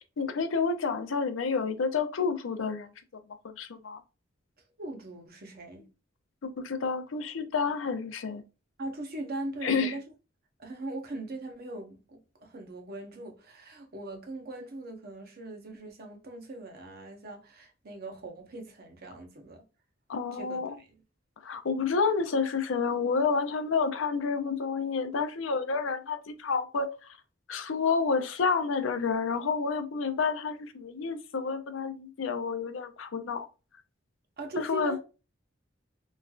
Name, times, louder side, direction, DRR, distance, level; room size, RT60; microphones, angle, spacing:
voice 1, 0.2-2.9 3.4-4.0 6.4-8.4 9.6-9.9 20.1-20.8 21.4-27.2 27.5-33.5 34.6-35.0, left 5 dB, 85° left, 0.5 m, -29 dB
voice 2, 4.8-5.9 8.8-10.0 10.6-19.6 20.3-21.0 34.4-35.0, right 2 dB, 50° right, 0.8 m, -40 dB
3.1 x 2.5 x 2.3 m
head